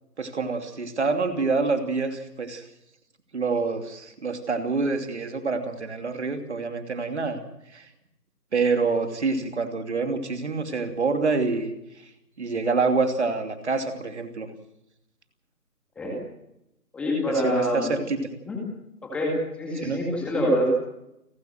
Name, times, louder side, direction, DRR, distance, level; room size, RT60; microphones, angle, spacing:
voice 1, 0.2-2.6 3.3-7.4 7.7-7.9 8.5-11.7 12.4-14.5 17.3-18.2 19.8-20.0, right 4 dB, 45° right, 6 dB, 3.0 m, -26 dB
voice 2, 16.9-17.9 18.5-18.6 19.0-20.7, equal, ahead, -2 dB, 2.0 m, -25 dB
29.5 x 12.0 x 7.8 m, 0.85 s
figure-of-eight pair, 160°, 47 cm